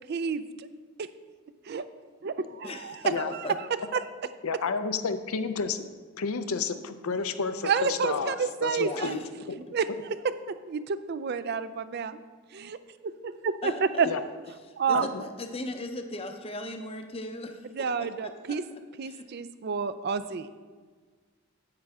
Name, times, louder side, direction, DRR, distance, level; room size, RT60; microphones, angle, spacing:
voice 1, 0.1-0.7 1.0-1.1 1.7-1.8 2.2-3.0 3.9-4.0 7.6-9.1 9.7-9.9 10.7-12.2 12.5-12.8 13.2-14.1 14.8-15.1 17.7-18.6 19.0-20.5, right 6 dB, 45° right, 13 dB, 0.4 m, -29 dB
voice 2, 2.6-3.5 8.7-9.3 13.6-14.1 14.9-17.6 18.0-18.6 19.0-19.3, left 2 dB, 25° left, 5 dB, 0.6 m, -37 dB
voice 3, 4.4-5.8 6.2-8.4 8.6-9.2 9.5-9.6 14.0-14.2 14.9-15.2, left 5 dB, 80° left, 10 dB, 0.6 m, -31 dB
9.7 x 8.6 x 3.5 m, 1.5 s
head